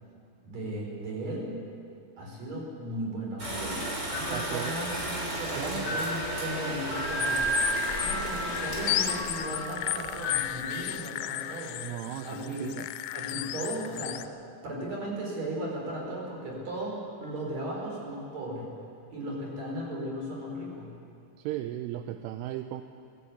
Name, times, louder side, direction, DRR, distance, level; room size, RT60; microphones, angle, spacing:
voice 1, 0.4-1.6 2.2-3.9 4.1-7.5 8.0-11.8 12.2-12.8 13.1-14.2 14.6-18.7 19.1-20.9, right 1 dB, 35° right, -2 dB, 5.4 m, -36 dB
sound 1, 3.4-10.7, right 1 dB, 20° right, 2.7 m, -35 dB
sound 2, 4.1-10.4, equal, 25° left, 3.5 m, -34 dB
voice 2, 4.3-4.8 5.6-6.0 11.8-12.9 21.4-22.8, right 13 dB, 85° right, 8 dB, 3.0 m, -36 dB
sound 3, 7.2-14.3, left 15 dB, 85° left, 3.3 m, -34 dB
20.0 x 15.0 x 8.5 m, 2.6 s
omnidirectional pair, 5.9 m